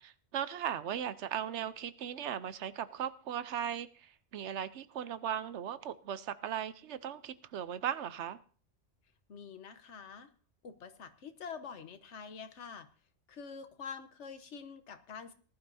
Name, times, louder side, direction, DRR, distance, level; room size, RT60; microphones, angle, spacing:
voice 1, 0.0-8.4, right 9 dB, 75° right, 15 dB, 1.0 m, -38 dB
voice 2, 9.3-10.3 10.6-12.9 13.3-15.3, left 6 dB, 80° left, 10 dB, 1.3 m, -46 dB
19.0 x 11.5 x 2.7 m, 0.40 s
omnidirectional pair, 1.2 m